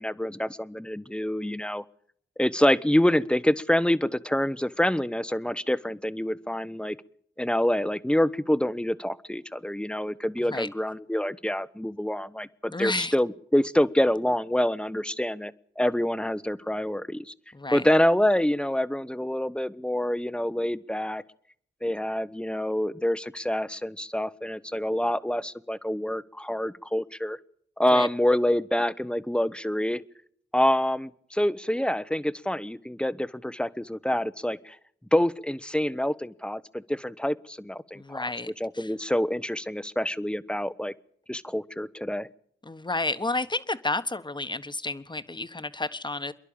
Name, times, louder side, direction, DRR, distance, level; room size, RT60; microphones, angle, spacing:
voice 1, 0.0-1.8 2.4-7.0 7.4-17.3 17.7-21.2 21.8-27.4 27.8-30.0 30.5-34.8 35.1-38.2 38.6-40.9 41.3-42.3, left 1 dB, 5° left, 16 dB, 0.9 m, -26 dB
voice 2, 12.7-13.1 17.5-17.9 27.9-28.1 37.9-38.9 42.6-46.3, left 2 dB, 25° left, 12 dB, 1.3 m, -31 dB
27.5 x 11.0 x 8.7 m, 0.66 s
cardioid pair, 55°, 20 cm